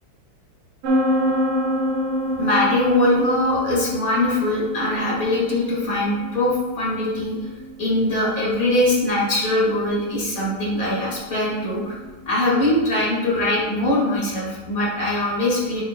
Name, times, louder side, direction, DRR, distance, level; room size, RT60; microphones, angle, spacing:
sound 1, 0.8-12.3, equal, 90° right, 1.7 m, -28 dB
voice 1, 2.4-7.4 7.8-12.0 12.3-15.8, left 1 dB, 40° left, -5 dB, 2.1 m, -21 dB
10.0 x 5.4 x 2.2 m, 1.3 s
omnidirectional pair, 2.4 m